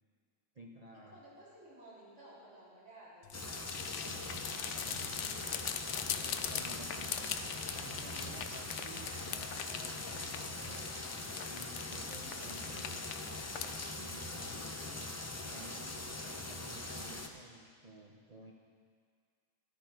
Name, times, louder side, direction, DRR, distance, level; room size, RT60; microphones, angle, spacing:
voice 1, 0.5-1.2 4.0-5.4 5.9-7.2 7.7-10.9 11.5-13.1 13.6-18.5, right 2 dB, 35° right, -2 dB, 0.8 m, -54 dB
voice 2, 1.1-3.3 6.3-6.9, right 1 dB, 55° right, -9 dB, 4.1 m, -56 dB
sound 1, 3.2-13.9, left 8 dB, 65° left, 0.9 m, -42 dB
sound 2, 3.3-17.3, left 2 dB, 25° left, 0.3 m, -42 dB
13.0 x 11.5 x 4.6 m, 2.1 s
omnidirectional pair, 1.4 m